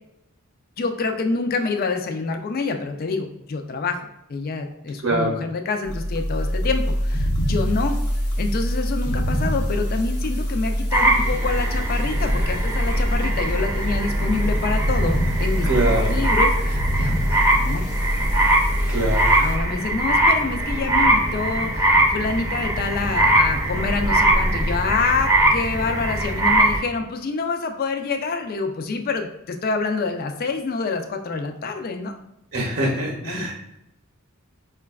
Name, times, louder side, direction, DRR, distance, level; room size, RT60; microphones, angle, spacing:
voice 1, 0.8-8.0 8.4-17.8 19.4-32.1 33.2-33.5, left 4 dB, 40° left, 5 dB, 0.3 m, -27 dB
voice 2, 5.0-5.4 15.6-16.2 18.9-19.3 32.5-33.5, right 1 dB, 55° right, -1 dB, 0.7 m, -23 dB
sound 1, 5.9-19.6, equal, 80° left, 0.8 m, -24 dB
sound 2, 10.9-26.8, right 1 dB, 15° right, 0.5 m, -21 dB
4.7 x 2.2 x 2.3 m, 0.88 s
head